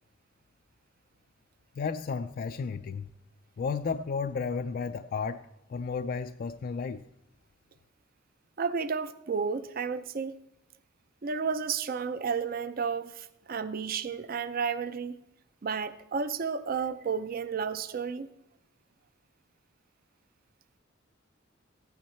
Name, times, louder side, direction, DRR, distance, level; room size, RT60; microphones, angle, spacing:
voice 1, 1.8-3.1 3.6-5.4 5.7-7.0, left 5 dB, 45° left, 0.3 m, -33 dB
voice 2, 8.6-10.3 11.2-15.2 15.6-18.3, right 5 dB, 45° right, 0.5 m, -32 dB
15.0 x 9.3 x 4.3 m
head